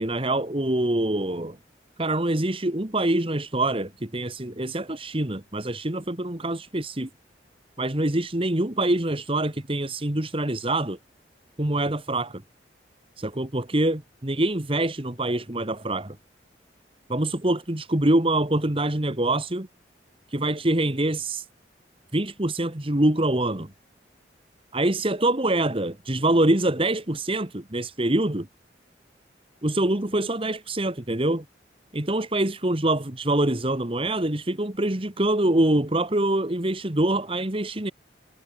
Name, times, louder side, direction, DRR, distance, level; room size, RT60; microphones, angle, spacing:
voice 1, 0.0-1.6 2.0-7.1 7.8-11.0 11.6-12.4 13.2-16.1 17.1-19.7 20.3-21.4 22.1-23.7 24.7-28.5 29.6-31.4 31.9-37.9, right 1 dB, 30° right, 1.7 m, -25 dB
head